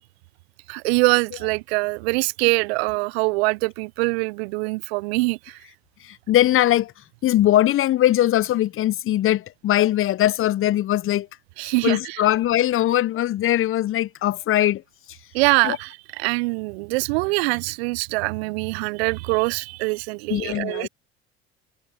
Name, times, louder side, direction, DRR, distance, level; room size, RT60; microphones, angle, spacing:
voice 1, 0.7-5.6 11.6-12.2 15.3-20.9, right 26 dB, 65° right, 0.7 m, -23 dB
voice 2, 6.0-6.9 7.2-11.3 11.8-14.8 15.6-15.8 20.3-20.9, left 13 dB, 40° left, 0.8 m, -21 dB
figure-of-eight pair, 60°, 33 cm